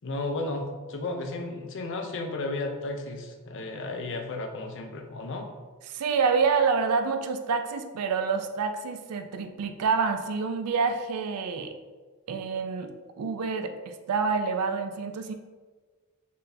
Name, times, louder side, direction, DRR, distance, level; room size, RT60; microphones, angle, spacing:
voice 1, 0.0-5.5, left 2 dB, 60° left, 3 dB, 0.5 m, -33 dB
voice 2, 5.9-11.8 12.3-15.3, right 5 dB, 80° right, 7 dB, 0.4 m, -27 dB
4.4 x 3.2 x 2.6 m, 1.4 s
head